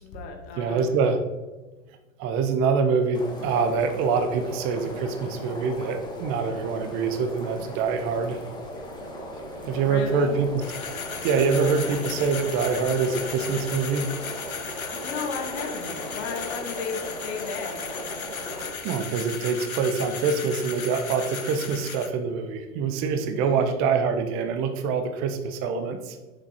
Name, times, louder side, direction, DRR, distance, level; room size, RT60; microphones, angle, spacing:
voice 1, 0.0-1.0 9.7-10.4 15.0-17.8 23.4-23.7, left 5 dB, 50° left, 3 dB, 1.6 m, -34 dB
voice 2, 0.6-1.2 2.2-8.4 9.7-10.5 11.2-14.1 18.8-26.2, right 5 dB, 30° right, 8 dB, 0.7 m, -25 dB
sound 1, 3.1-18.7, equal, 10° left, 1.4 m, -37 dB
sound 2, 10.6-22.1, left 6 dB, 90° left, 0.7 m, -36 dB
7.6 x 6.2 x 2.9 m, 1.2 s
figure-of-eight pair, 95°, 41 cm